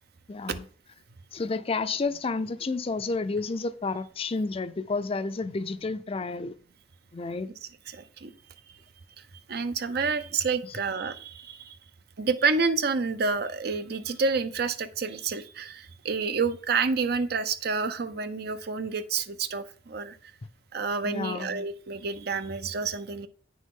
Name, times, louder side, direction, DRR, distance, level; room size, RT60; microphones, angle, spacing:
voice 1, 0.3-0.6 1.3-6.5 7.1-7.5 21.0-21.6, left 3 dB, 35° left, 0.5 m, -30 dB
voice 2, 7.6-8.3 9.5-11.8 12.2-20.2 20.7-23.3, right 4 dB, 60° right, 0.7 m, -29 dB
9.2 x 6.3 x 3.8 m
head